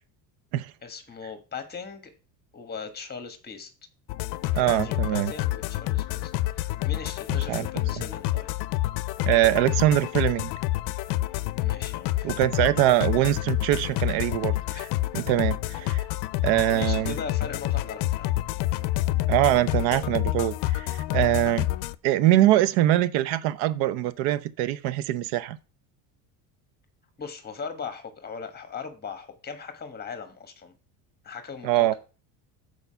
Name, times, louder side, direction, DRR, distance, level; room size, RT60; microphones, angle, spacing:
voice 1, 0.8-2.1 2.5-3.7 4.5-8.5 11.6-12.5 14.8-14.9 16.7-18.4 27.2-30.7 31.2-31.9, left 5 dB, 20° left, 1.3 m, -39 dB
sound 1, 4.1-22.0, left 16 dB, 60° left, 0.6 m, -28 dB
voice 2, 4.5-5.3 7.5-7.7 9.3-10.5 12.2-14.5 15.1-16.0 16.4-17.2 19.3-21.7 22.0-25.6 31.6-31.9, right 14 dB, 70° right, 0.8 m, -23 dB
7.0 x 4.8 x 5.6 m
cardioid pair, 135°, 46 cm